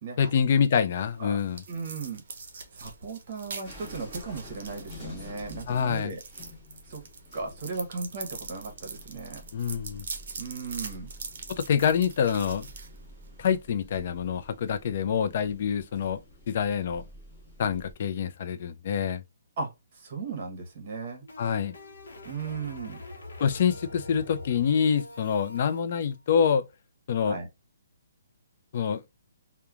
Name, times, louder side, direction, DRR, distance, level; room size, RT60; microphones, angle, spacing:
voice 1, 0.2-1.6 5.7-6.1 9.5-10.1 11.6-12.7 13.4-16.2 16.5-17.0 17.6-19.2 21.4-21.7 23.4-26.6 27.1-27.4 28.7-29.0, left 7 dB, 45° left, 0.3 m, -26 dB
sound 1, 0.9-13.5, right 4 dB, 55° right, 0.6 m, -43 dB
voice 2, 1.7-2.2 2.7-6.2 6.9-7.0 7.3-9.4 10.4-11.1 19.6-21.2 22.2-23.0 27.3-27.5, right 4 dB, 35° right, 1.0 m, -36 dB
sound 2, 3.6-17.9, left 1 dB, 10° left, 1.4 m, -49 dB
sound 3, 20.8-25.8, left 2 dB, 75° left, 0.7 m, -44 dB
2.9 x 2.1 x 2.4 m
hypercardioid pair, 165°, 0 cm